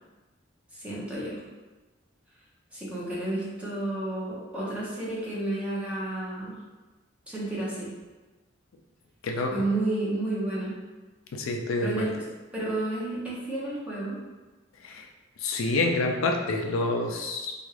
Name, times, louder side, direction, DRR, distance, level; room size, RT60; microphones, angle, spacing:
voice 1, 0.7-1.4 2.7-6.6 7.3-7.9 9.5-10.8 11.8-12.2 12.5-14.2, right 2 dB, 5° right, -8 dB, 0.8 m, -31 dB
voice 2, 11.3-12.1 14.8-15.1 15.4-17.5, left 2 dB, 80° left, 2 dB, 0.4 m, -27 dB
3.5 x 2.3 x 3.2 m, 1.2 s
head